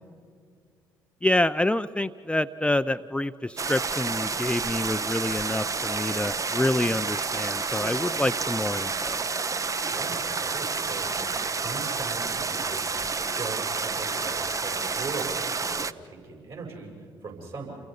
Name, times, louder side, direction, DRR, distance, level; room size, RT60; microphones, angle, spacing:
voice 1, 1.2-9.3, left 1 dB, 10° left, 12 dB, 0.5 m, -27 dB
sound 1, 3.6-15.9, right 4 dB, 30° right, 0.7 m, -29 dB
voice 2, 9.9-13.1 13.4-17.8, right 4 dB, 55° right, 0 dB, 7.2 m, -40 dB
29.0 x 23.0 x 5.4 m, 2.2 s
hypercardioid pair, 45°, 11 cm